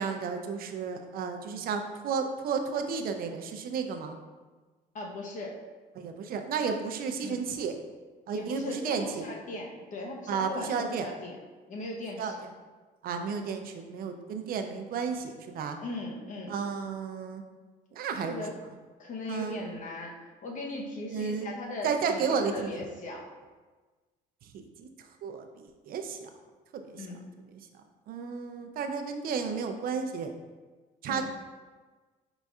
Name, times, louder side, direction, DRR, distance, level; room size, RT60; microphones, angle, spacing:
voice 1, 0.0-4.2 6.0-7.7 8.3-9.3 10.3-11.1 12.2-12.5 13.0-15.8 16.5-17.4 17.9-18.4 19.3-19.6 21.1-21.5 21.8-22.7 24.5-24.9 25.2-26.3 26.8-27.1 28.1-30.3 31.0-31.2, right 5 dB, 60° right, 6 dB, 0.5 m, -32 dB
voice 2, 4.9-5.6 7.2-7.4 8.3-11.4 11.7-12.4 15.8-16.5 18.2-18.5 19.0-23.3 27.0-27.2 31.1-31.2, left 2 dB, 50° left, 0 dB, 0.9 m, -38 dB
5.3 x 4.0 x 2.4 m, 1.3 s
cardioid pair, 110°, 17 cm